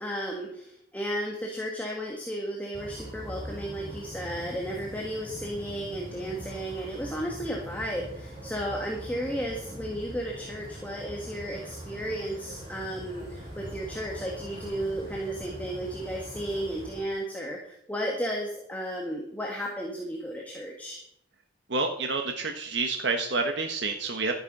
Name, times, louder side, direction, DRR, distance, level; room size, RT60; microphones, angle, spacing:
voice 1, 0.0-21.0, equal, 10° left, -1 dB, 1.6 m, -34 dB
sound 1, 2.7-17.0, right 1 dB, 30° right, 5.9 m, -42 dB
voice 2, 21.7-24.3, right 3 dB, 70° right, 4 dB, 1.2 m, -28 dB
12.0 x 9.5 x 5.4 m, 0.70 s
head